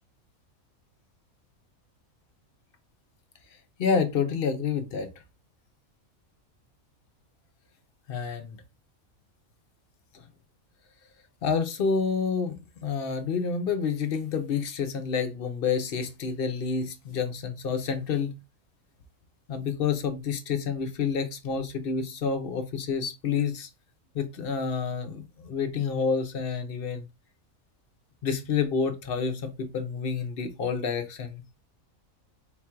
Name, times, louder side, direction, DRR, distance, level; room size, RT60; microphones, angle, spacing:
voice 1, 3.8-5.1 8.1-8.6 10.1-10.2 11.4-18.3 19.5-23.7 24.1-27.0 28.2-31.4, left 6 dB, 55° left, 0.7 m, -29 dB
3.9 x 2.4 x 4.4 m
omnidirectional pair, 1.5 m